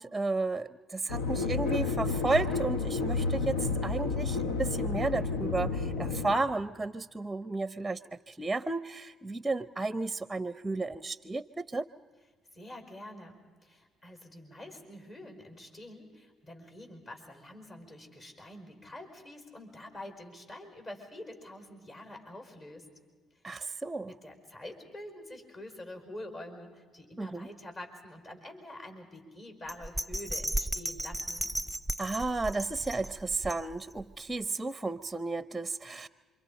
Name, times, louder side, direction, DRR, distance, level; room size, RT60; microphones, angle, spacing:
voice 1, 0.0-8.0 8.3-11.9 23.4-24.1 27.2-27.5 32.0-36.1, right 3 dB, 15° right, 16 dB, 0.6 m, -33 dB
sound 1, 1.1-6.3, left 4 dB, 90° left, 0.9 m, -31 dB
voice 2, 12.5-22.9 24.1-31.5, left 1 dB, 45° left, 4 dB, 5.0 m, -46 dB
Bell, 29.7-34.0 34.4-34.5, right 1 dB, 5° left, 1.0 m, -35 dB
28.0 x 24.5 x 5.2 m, 1.5 s
hypercardioid pair, 60°, 0 cm